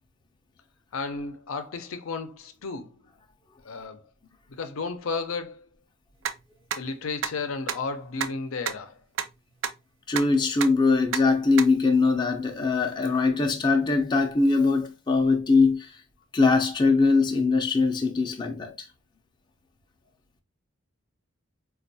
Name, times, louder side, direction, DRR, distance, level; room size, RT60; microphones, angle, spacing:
voice 1, 0.9-3.0 3.6-4.1 4.5-5.7 6.7-9.0, left 4 dB, 85° left, 0.5 m, -33 dB
sound 1, 6.2-6.3 6.7-6.8 7.2-7.3 7.7-7.8 8.2-8.3 8.7-8.8 9.2-9.3 9.6-9.7 10.2-10.3 10.6-10.7 11.1-11.2 11.6-11.7, right 8 dB, 70° right, 0.4 m, -27 dB
voice 2, 10.1-15.9 16.3-18.7, left 4 dB, 20° left, 0.4 m, -22 dB
4.3 x 2.3 x 2.6 m
head